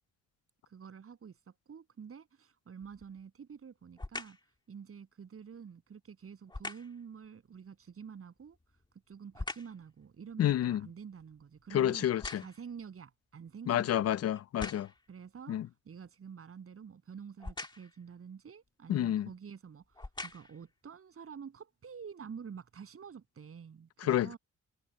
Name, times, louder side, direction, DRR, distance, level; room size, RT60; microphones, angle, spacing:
voice 1, 0.7-4.4 4.7-8.6 9.1-12.1 12.4-14.2 15.1-24.4, right 6 dB, 45° right, 7.8 m, -48 dB
sound 1, 2.8-3.2 4.0-4.5 6.5-7.0 8.4-9.8 10.3-12.8 13.5-13.6 14.4-15.1 17.4-18.0 19.0-19.2 19.8-20.7 21.3-21.4, left 2 dB, 15° left, 2.0 m, -44 dB
voice 2, 10.4-10.9 11.7-12.4 13.7-14.9 15.5-15.7 18.9-19.3 24.0-24.4, left 11 dB, 55° left, 0.4 m, -29 dB
cardioid pair, 130°, 31 cm